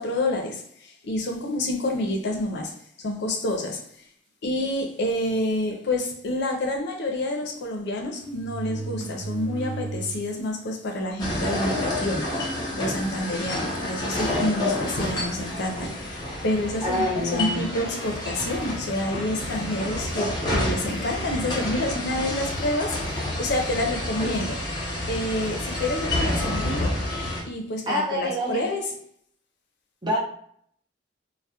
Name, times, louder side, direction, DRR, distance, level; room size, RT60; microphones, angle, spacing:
voice 1, 0.0-4.1 4.4-24.6 25.1-26.9 27.4-28.8, left 1 dB, 60° left, 0.5 m, -28 dB
sound 1, 4.6-4.8 5.6-5.7 6.0-6.1 7.4-7.5 8.2-10.5 10.9-11.0 11.8-11.9 12.3-12.7 13.3-13.4 14.7-15.5 16.5-16.8, right 3 dB, 90° right, 0.4 m, -36 dB
sound 2, 11.2-27.4, left 1 dB, 25° left, 0.8 m, -29 dB
voice 2, 16.8-17.7 27.9-28.7 30.0-30.2, equal, 25° right, 0.6 m, -26 dB
2.2 x 2.1 x 2.8 m
head